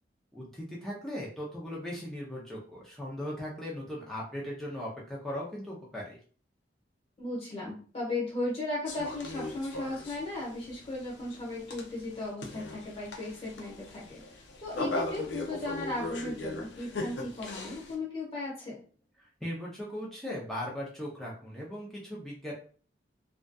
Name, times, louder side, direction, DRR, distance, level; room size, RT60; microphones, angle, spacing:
voice 1, 0.3-6.2 19.2-22.5, left 1 dB, ahead, -5 dB, 0.5 m, -38 dB
voice 2, 7.2-14.2 14.6-18.8, left 2 dB, 30° left, -7 dB, 1.1 m, -36 dB
sound 1, 8.9-18.0, left 2 dB, 80° left, 0.5 m, -39 dB
2.5 x 2.3 x 2.2 m, 0.42 s
head